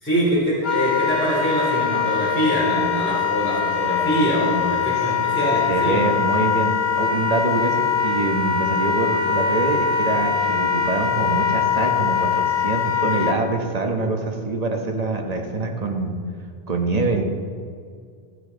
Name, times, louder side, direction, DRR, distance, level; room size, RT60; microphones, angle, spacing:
voice 1, 0.0-6.0, equal, 10° left, -9 dB, 2.9 m, -23 dB
Wind instrument woodwind instrument, 0.6-13.4, left 7 dB, 75° left, 1.2 m, -22 dB
voice 2, 5.7-6.7 7.0-16.2 16.7-17.4, right 3 dB, 40° right, 2 dB, 1.2 m, -24 dB
13.5 x 8.1 x 4.0 m, 2.1 s
omnidirectional pair, 1.0 m